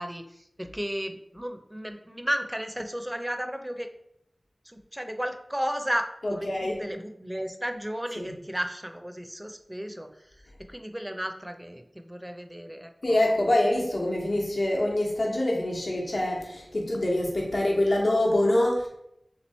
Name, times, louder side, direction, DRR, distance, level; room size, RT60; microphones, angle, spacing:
voice 1, 0.0-3.9 4.7-10.1 10.7-13.2, equal, 10° right, 6 dB, 0.4 m, -34 dB
voice 2, 6.2-6.8 8.2-8.3 13.0-18.9, left 1 dB, 75° left, -3 dB, 1.1 m, -25 dB
3.6 x 3.0 x 4.1 m, 0.79 s
wide cardioid pair, 60°, 0 cm